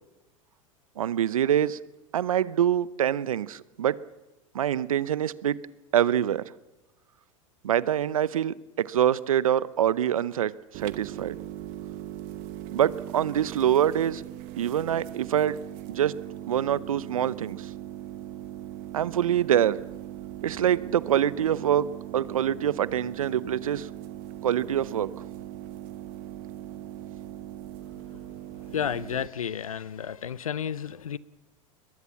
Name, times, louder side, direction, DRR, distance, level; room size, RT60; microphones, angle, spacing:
voice 1, 1.0-1.8 2.1-4.0 4.5-5.6 5.9-6.4 7.6-11.4 12.7-14.2 14.6-15.6 15.9-16.2 16.5-17.7 18.9-19.8 20.4-23.9 24.4-25.2, right 10 dB, 80° right, 0.8 m, -25 dB
sound 1, 10.7-29.3, right 13 dB, 55° right, 1.1 m, -40 dB
voice 2, 28.7-31.2, left 8 dB, 90° left, 0.8 m, -32 dB
22.0 x 21.5 x 7.1 m
hypercardioid pair, 90°, 17 cm